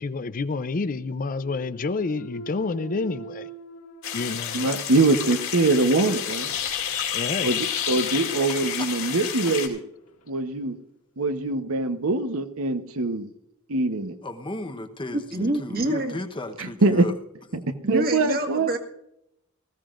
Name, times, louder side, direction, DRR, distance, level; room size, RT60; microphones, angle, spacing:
voice 1, 0.0-3.5 4.1-4.7 7.1-7.6, left 3 dB, 40° left, 13 dB, 0.5 m, -29 dB
Thump thud, 1.3-5.3 5.8-10.5, right 3 dB, 80° left, 2.0 m, -45 dB
sound 1, 4.0-9.7, left 9 dB, 65° left, 2.6 m, -30 dB
voice 2, 4.5-6.5 7.4-9.8 10.3-10.8 11.2-13.3 13.7-14.2 16.6-17.1 17.5-17.6 17.9-18.7, right 3 dB, 70° right, 9 dB, 1.0 m, -23 dB
voice 3, 7.7-8.0 8.8-8.9 14.2-17.1, left 1 dB, 25° left, 7 dB, 0.9 m, -35 dB
voice 4, 15.1-16.2 17.8-18.8, right 1 dB, 45° right, 3 dB, 1.8 m, -26 dB
19.0 x 15.0 x 2.5 m, 0.78 s
head